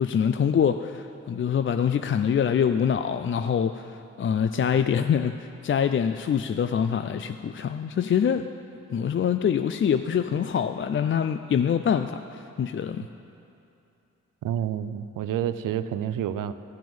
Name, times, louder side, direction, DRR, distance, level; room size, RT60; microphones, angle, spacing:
voice 1, 0.0-8.5 8.9-13.0, left 8 dB, 40° left, 9 dB, 0.4 m, -25 dB
voice 2, 14.4-16.5, right 10 dB, 80° right, 13 dB, 0.6 m, -29 dB
15.0 x 5.9 x 7.0 m, 2.7 s
supercardioid pair, 55°, 33 cm